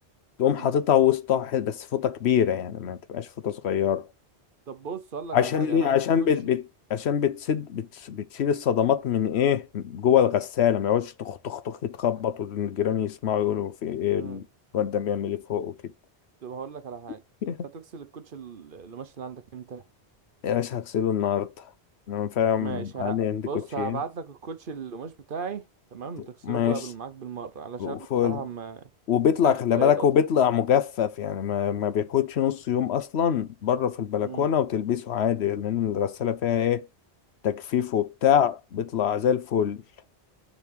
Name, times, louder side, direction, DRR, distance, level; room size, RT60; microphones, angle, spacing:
voice 1, 0.4-4.0 5.3-6.6 6.9-14.4 14.7-15.7 17.4-17.6 20.4-21.6 22.1-24.0 26.4-26.8 27.8-28.4 29.1-36.8 37.4-39.8, left 9 dB, 80° left, 1.0 m, -24 dB
voice 2, 4.7-6.3 14.2-14.4 16.4-19.8 22.6-25.6 25.9-28.0 28.2-28.8 29.4-30.1 34.2-34.5, right 6 dB, 55° right, 1.0 m, -37 dB
7.0 x 4.3 x 5.4 m
omnidirectional pair, 1.1 m